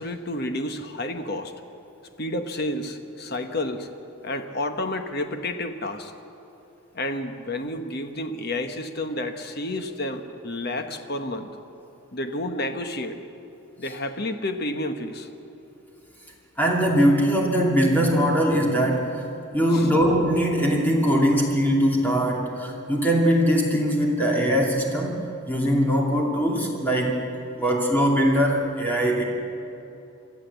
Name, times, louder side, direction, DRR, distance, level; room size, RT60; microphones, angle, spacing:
voice 1, 0.0-1.5 2.2-3.9 4.2-6.1 6.9-11.5 12.1-13.2 13.8-15.3 19.7-19.9, left 1 dB, 50° left, 7 dB, 1.2 m, -30 dB
voice 2, 16.6-19.1 19.5-25.2 25.5-27.2 27.5-29.2, equal, 10° left, -2 dB, 2.6 m, -21 dB
23.0 x 13.5 x 8.1 m, 2.9 s
head